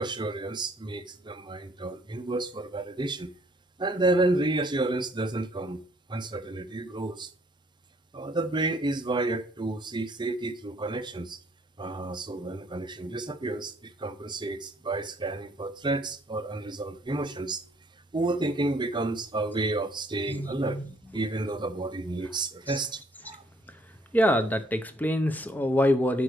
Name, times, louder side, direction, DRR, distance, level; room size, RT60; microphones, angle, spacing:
voice 1, 0.0-3.3 3.8-5.8 6.1-7.3 8.1-11.4 11.8-17.6 18.1-20.8 21.1-23.4, right 2 dB, 20° right, 0.7 m, -30 dB
voice 2, 20.3-20.8 24.1-26.2, equal, 10° left, 0.7 m, -25 dB
7.9 x 6.0 x 4.8 m
head